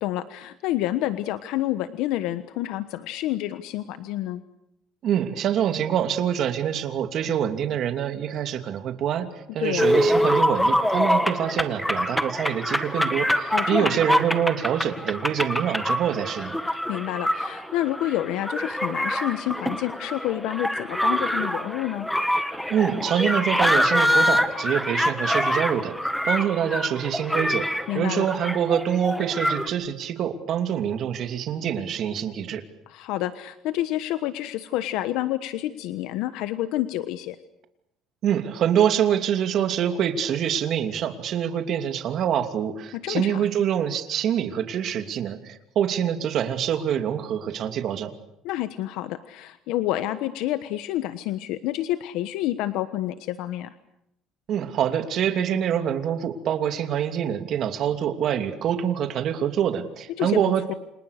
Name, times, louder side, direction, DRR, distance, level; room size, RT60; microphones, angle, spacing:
voice 1, 0.0-4.4 9.6-9.9 13.5-13.9 16.9-22.1 27.9-28.3 32.9-37.3 42.9-43.5 48.4-53.7 60.1-60.4 60.7-60.8, left 14 dB, 80° left, 11 dB, 1.3 m, -28 dB
voice 2, 5.0-16.5 22.7-27.7 27.9-32.6 38.2-48.1 54.5-60.8, right 9 dB, 50° right, 7 dB, 2.8 m, -25 dB
sound 1, 9.8-29.7, equal, 5° left, 1.7 m, -25 dB
29.5 x 27.0 x 6.7 m, 0.80 s
cardioid pair, 135°, 0 cm